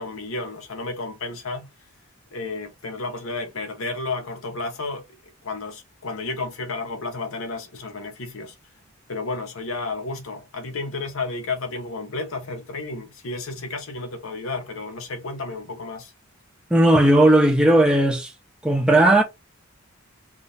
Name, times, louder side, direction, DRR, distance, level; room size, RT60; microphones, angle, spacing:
voice 1, 0.0-1.7 2.3-5.0 5.4-8.5 9.1-16.1, left 3 dB, 75° left, 0.8 m, -32 dB
voice 2, 16.7-18.3 18.6-19.2, right 1 dB, 5° right, 0.7 m, -16 dB
3.6 x 2.5 x 4.0 m
head